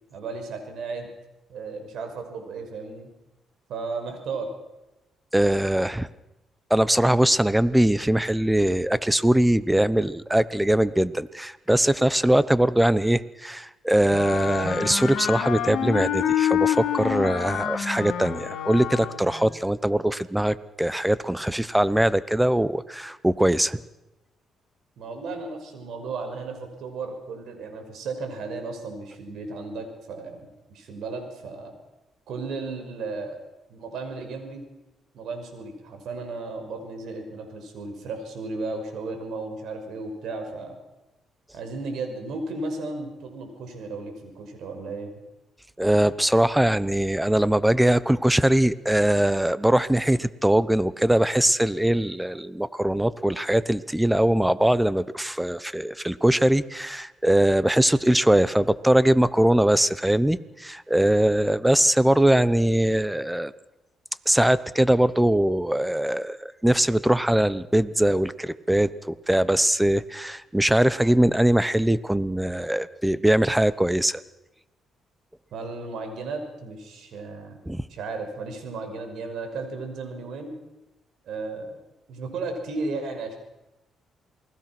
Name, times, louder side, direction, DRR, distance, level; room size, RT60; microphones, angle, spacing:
voice 1, 0.1-1.1 1.5-3.1 3.7-4.5 25.0-31.7 32.3-33.4 33.7-34.7 35.1-40.8 41.5-45.1 75.5-77.6 77.9-80.6 81.2-81.8 82.1-83.3, right 3 dB, 75° right, 5 dB, 5.8 m, -34 dB
voice 2, 5.3-6.1 6.7-23.8 45.8-63.5 64.3-74.2 77.7-77.8, right 1 dB, 5° right, 17 dB, 0.9 m, -21 dB
Wind instrument woodwind instrument, 14.1-19.4, left 10 dB, 80° left, 2.4 m, -27 dB
28.0 x 20.0 x 6.1 m, 0.99 s
cardioid pair, 90°, 0 cm